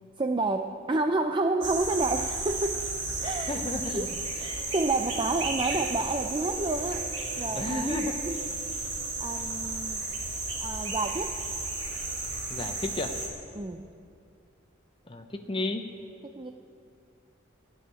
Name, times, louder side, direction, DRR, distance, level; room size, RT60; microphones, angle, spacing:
voice 1, 0.2-2.9 3.2-4.1 4.4-8.4 8.9-10.0 10.6-11.4 13.5-13.9 16.2-16.5, right 2 dB, 25° right, 5 dB, 0.4 m, -30 dB
sound 1, 1.6-13.3, right 3 dB, 65° right, 2.4 m, -33 dB
voice 2, 3.2-4.1 7.5-8.2 12.5-13.1 15.1-15.9, left 2 dB, 25° left, 4 dB, 0.7 m, -33 dB
15.0 x 6.4 x 9.8 m, 2.4 s
head